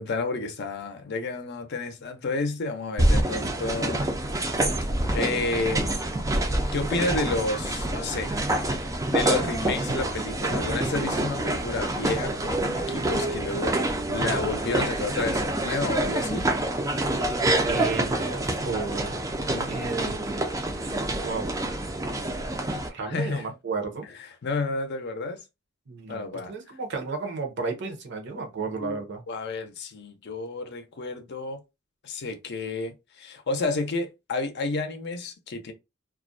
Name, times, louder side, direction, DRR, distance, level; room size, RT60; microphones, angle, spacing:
voice 1, 0.0-4.6 5.1-5.9 6.7-8.4 8.7-16.5 19.4-19.7 23.0-23.5 24.0-25.4 26.1-26.8 28.8-31.6 32.0-35.7, left 3 dB, 55° left, 0.5 m, -31 dB
sound 1, 3.0-22.9, right 1 dB, 15° right, 0.4 m, -27 dB
voice 2, 17.7-19.1 19.7-20.1 21.2-21.5 22.6-24.1 25.9-29.2, right 4 dB, 60° right, 0.7 m, -33 dB
2.4 x 2.1 x 2.5 m
head